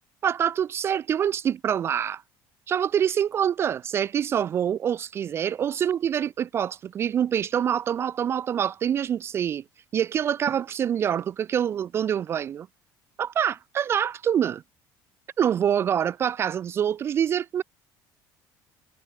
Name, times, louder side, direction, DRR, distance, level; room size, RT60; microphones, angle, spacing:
voice 1, 0.2-2.2 2.7-9.6 9.9-12.7 13.2-14.6 15.4-17.6, right 9 dB, 35° right, 0.3 m, -25 dB
cardioid pair, 135°, 8 cm